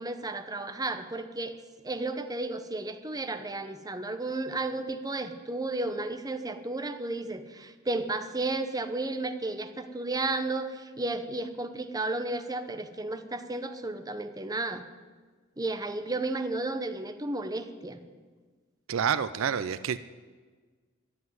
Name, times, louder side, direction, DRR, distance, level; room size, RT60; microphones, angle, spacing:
voice 1, 0.0-1.6 1.8-14.8 15.6-18.0, right 2 dB, 20° right, 8 dB, 0.8 m, -33 dB
voice 2, 18.9-20.0, right 7 dB, 70° right, 14 dB, 0.4 m, -28 dB
12.0 x 7.9 x 9.3 m, 1.4 s
head